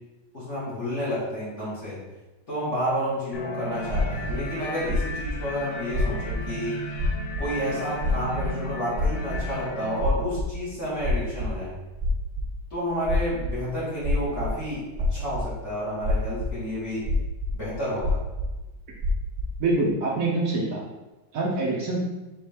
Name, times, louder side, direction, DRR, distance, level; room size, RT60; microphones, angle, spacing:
voice 1, 0.3-2.0 2.5-6.8 7.4-11.7 12.7-14.8 15.1-17.0 17.5-18.2, equal, 40° left, -10 dB, 1.6 m, -30 dB
sound 1, 3.3-10.0, left 1 dB, 75° left, 0.6 m, -36 dB
sound 2, 3.8-4.5 4.8-5.4 5.9-6.4 6.9-7.7 7.9-9.5 9.9-10.5 10.7-11.5 11.9-12.5 13.0-13.6 14.0-14.6 14.9-15.5 16.0-16.5 16.8-17.6 18.0-18.5 18.9-19.6, left 2 dB, 40° right, 1.0 m, -26 dB
voice 2, 19.6-20.8 21.3-22.0, right 2 dB, 60° right, -3 dB, 1.0 m, -25 dB
4.5 x 3.4 x 3.3 m, 1.1 s
omnidirectional pair, 2.0 m